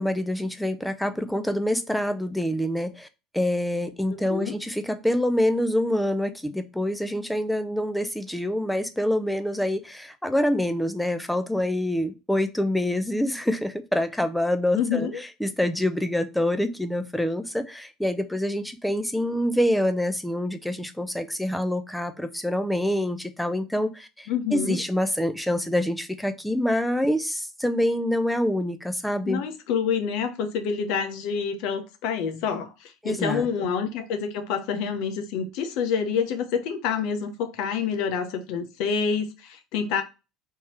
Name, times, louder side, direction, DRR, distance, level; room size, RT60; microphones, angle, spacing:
voice 1, 0.0-3.1 3.3-15.1 15.4-29.4 33.0-33.7, left 1 dB, ahead, 0.6 m, -26 dB
voice 2, 14.7-15.2 24.3-24.8 29.3-40.0, left 6 dB, 70° left, 0.8 m, -27 dB
3.6 x 2.8 x 4.2 m
supercardioid pair, 120°, 0 cm